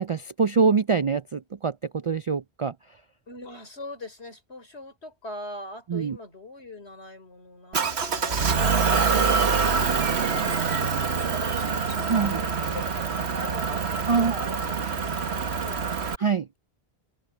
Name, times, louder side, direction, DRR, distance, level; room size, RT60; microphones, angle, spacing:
voice 1, 0.0-3.0 5.9-6.2 12.1-12.4 14.1-14.4 16.2-16.5, right 5 dB, 55° right, 0.3 m, -24 dB
voice 2, 3.3-9.5 10.2-16.0, left 2 dB, 90° left, 4.3 m, -41 dB
Motor vehicle (road) / Engine, 7.7-16.1, right 5 dB, 80° right, 1.6 m, -25 dB
omnidirectional pair, 1.1 m